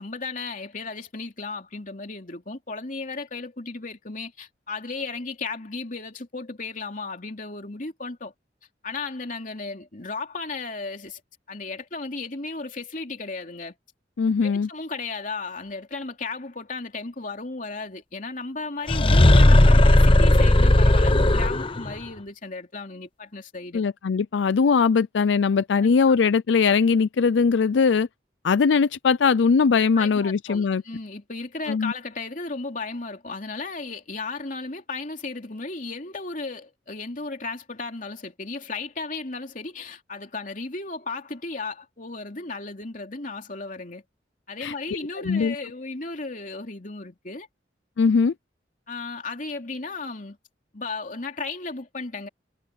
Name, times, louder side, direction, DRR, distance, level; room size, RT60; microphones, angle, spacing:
voice 1, 0.0-8.3 8.8-11.2 11.5-13.7 14.4-23.8 25.8-25.9 29.9-44.0 44.5-47.5 48.9-50.4 50.7-52.3, left 3 dB, 45° left, 3.0 m, -35 dB
voice 2, 14.2-14.7 23.7-28.1 28.4-30.8 31.7-31.9 44.6-44.7 45.2-45.5 48.0-48.3, left 5 dB, 85° left, 0.4 m, -20 dB
sound 1, 18.9-21.9, left 1 dB, 30° left, 0.9 m, -15 dB
head